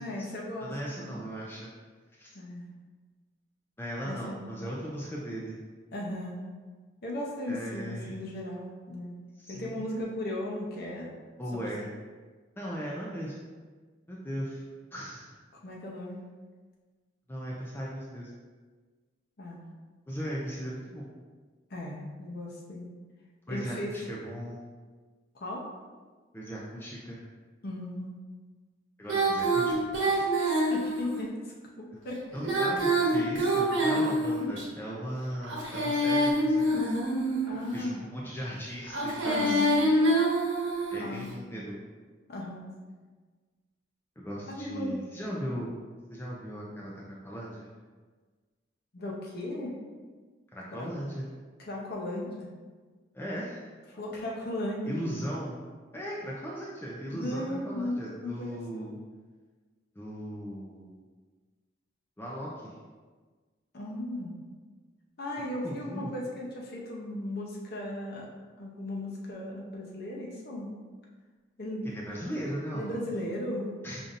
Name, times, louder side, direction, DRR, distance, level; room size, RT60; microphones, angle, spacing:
voice 1, 0.0-0.7 1.0-1.2 2.3-2.6 4.0-4.4 5.9-6.4 7.0-9.1 9.5-11.1 11.5-11.7 15.6-16.2 19.4-19.7 21.7-22.9 23.5-23.9 25.3-25.6 27.6-28.1 30.1-31.4 31.8-32.2 32.5-32.6 33.9-34.0 37.5-38.0 39.2-39.8 41.0-41.3 42.3-42.7 44.5-45.0 48.9-49.7 50.7-50.9 51.6-52.5 53.9-55.0 57.1-58.9 63.7-64.3 65.2-68.3 68.6-70.7 71.6-71.8 72.7-73.7, left 1 dB, 55° left, -3 dB, 0.7 m, -36 dB
voice 2, 0.6-1.7 2.2-2.3 3.8-5.6 7.5-8.2 9.4-9.9 11.4-11.9 12.6-13.5 14.1-14.6 14.9-15.3 17.3-18.3 20.1-21.1 23.5-24.6 26.3-27.2 29.0-29.9 32.3-36.9 37.7-39.6 40.9-41.8 44.2-45.7 46.1-47.7 50.5-51.3 53.1-53.7 54.8-55.6 55.9-59.0 60.0-61.0 62.2-62.7 65.6-66.1 71.8-73.0 73.8-74.0, equal, 10° left, -5 dB, 0.4 m, -37 dB
Female singing, 29.1-31.2 32.3-34.6 35.4-37.6 38.8-41.1, right 1 dB, 80° right, 1.0 m, -26 dB
5.1 x 2.7 x 2.5 m, 1.4 s
head